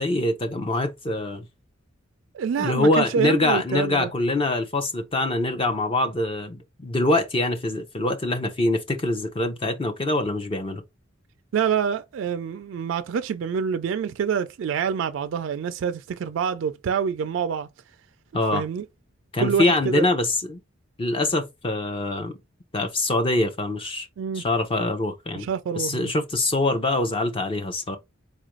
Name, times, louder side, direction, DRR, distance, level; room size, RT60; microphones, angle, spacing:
voice 1, 0.0-1.5 2.6-10.8 18.3-18.6 19.3-20.6 21.0-22.4 22.7-24.1 24.3-25.5 25.8-28.0, left 2 dB, 25° left, 0.5 m, -24 dB
voice 2, 2.3-4.1 11.5-17.7 18.5-18.8 19.4-20.0 24.2-24.4 25.3-26.1, right 7 dB, 70° right, 0.3 m, -26 dB
4.2 x 2.4 x 3.0 m
head